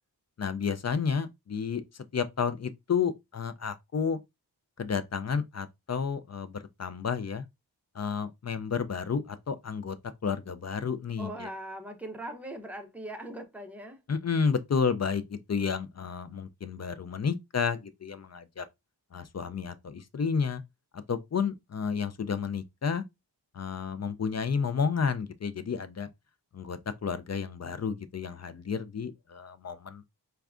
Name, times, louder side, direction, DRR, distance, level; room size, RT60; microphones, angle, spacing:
voice 1, 0.4-4.2 4.8-7.4 7.9-10.0 10.2-11.5 14.1-18.7 19.1-20.6 20.9-23.0 23.5-26.1 26.5-30.0, left 6 dB, 40° left, 0.4 m, -31 dB
voice 2, 11.2-14.0, right 1 dB, 5° right, 0.7 m, -40 dB
4.4 x 2.3 x 2.4 m
wide cardioid pair, 75°, 42 cm